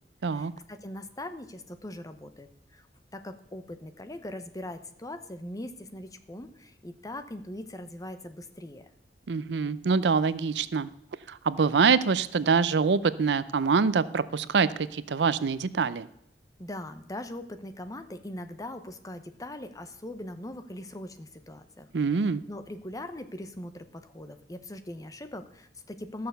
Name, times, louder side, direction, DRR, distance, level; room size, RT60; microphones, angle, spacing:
voice 1, 0.3-2.9 3.1-8.9 16.6-21.9 22.5-26.3, left 1 dB, 20° left, 9 dB, 0.8 m, -41 dB
voice 2, 9.3-10.9 11.3-16.1 21.9-22.4, right 5 dB, 75° right, 16 dB, 0.5 m, -25 dB
13.5 x 6.8 x 6.7 m, 0.75 s
head